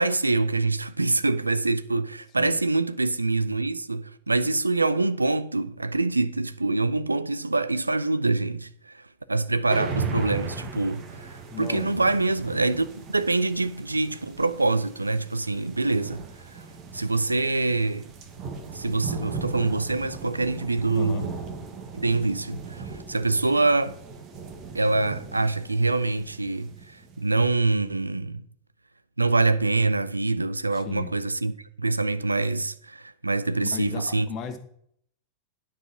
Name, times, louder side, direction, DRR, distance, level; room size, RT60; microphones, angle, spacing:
voice 1, 0.0-9.0 9.3-16.6 16.9-18.1 18.7-21.3 21.9-24.0 24.7-28.5 29.2-31.5 31.8-34.3, right 3 dB, 80° right, 0.4 m, -25 dB
sound 1, 9.7-27.5, right 4 dB, 35° right, 1.4 m, -38 dB
voice 2, 11.5-12.3 20.9-21.3 30.7-31.1 33.7-34.6, left 7 dB, 35° left, 1.2 m, -37 dB
9.7 x 4.9 x 5.6 m
figure-of-eight pair, 90°, 0 cm